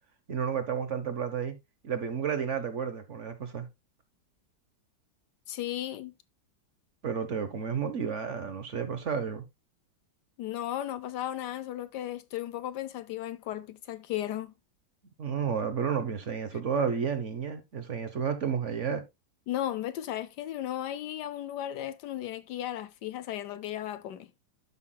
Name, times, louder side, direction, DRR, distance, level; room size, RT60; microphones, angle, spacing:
voice 1, 0.3-1.6 1.8-3.7 7.0-9.4 15.2-19.0, right 7 dB, 50° right, 1.0 m, -31 dB
voice 2, 5.5-6.1 10.4-14.5 19.5-24.3, left 12 dB, 75° left, 1.1 m, -35 dB
12.5 x 5.7 x 2.2 m
omnidirectional pair, 2.0 m